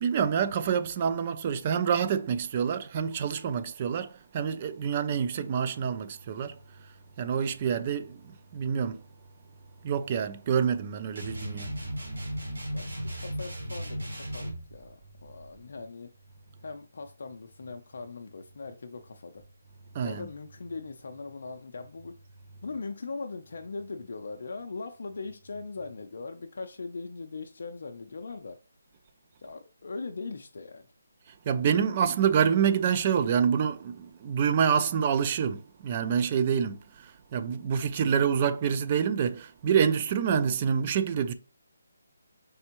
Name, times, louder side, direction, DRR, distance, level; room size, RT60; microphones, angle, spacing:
voice 1, 0.0-6.5 7.2-8.2 8.5-9.0 9.8-11.7 19.9-20.3 31.5-36.8 37.3-41.3, right 7 dB, 30° right, 0.3 m, -27 dB
sound 1, 11.2-14.6, equal, 80° right, 2.3 m, -35 dB
voice 2, 12.7-16.1 16.6-19.4 20.0-22.1 22.6-28.6 29.4-30.8, left 4 dB, 60° left, 0.4 m, -40 dB
4.3 x 3.3 x 2.9 m
hypercardioid pair, 165°, 0 cm